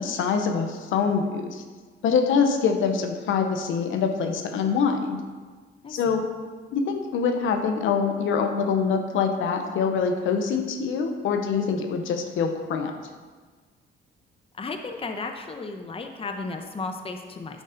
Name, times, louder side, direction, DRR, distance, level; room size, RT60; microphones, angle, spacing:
voice 1, 0.0-1.6 2.0-5.2 5.9-6.2 6.7-12.9, left 6 dB, 80° left, 5 dB, 0.9 m, -24 dB
voice 2, 5.8-6.2 14.5-17.6, left 3 dB, 30° left, 5 dB, 0.8 m, -34 dB
8.5 x 5.4 x 5.1 m, 1.4 s
cardioid pair, 90°, 20 cm